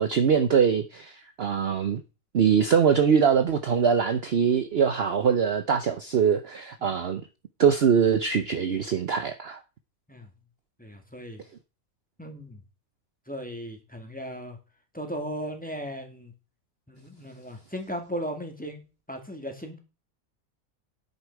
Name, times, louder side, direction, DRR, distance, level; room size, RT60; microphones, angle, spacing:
voice 1, 0.0-2.0 2.3-7.2 7.6-9.6, right 7 dB, 50° right, 0.9 m, -23 dB
voice 2, 10.8-11.4 12.2-12.6 13.3-14.6 14.9-16.3 16.9-19.8, equal, 5° left, 2.3 m, -37 dB
10.0 x 8.3 x 4.7 m
omnidirectional pair, 1.5 m